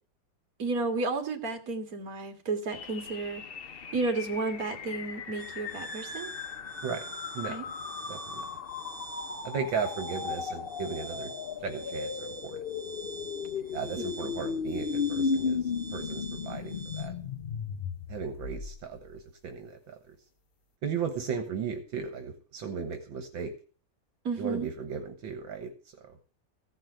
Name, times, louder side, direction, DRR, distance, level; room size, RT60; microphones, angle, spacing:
voice 1, 0.6-3.4 3.9-6.3 7.5-7.6 14.0-14.5 24.2-24.7, right 3 dB, 45° right, 5 dB, 2.4 m, -32 dB
sound 1, 2.7-19.0, left 6 dB, 85° left, 0.5 m, -36 dB
sound 2, 5.4-17.0, right 4 dB, 45° left, 4.8 m, -46 dB
voice 2, 8.1-8.5 9.4-11.3 11.6-12.6 13.7-15.6 15.9-17.1 18.1-20.2 20.8-23.5 24.4-25.7, right 6 dB, 75° right, 7 dB, 2.0 m, -36 dB
15.5 x 5.5 x 7.7 m, 0.39 s
omnidirectional pair, 2.1 m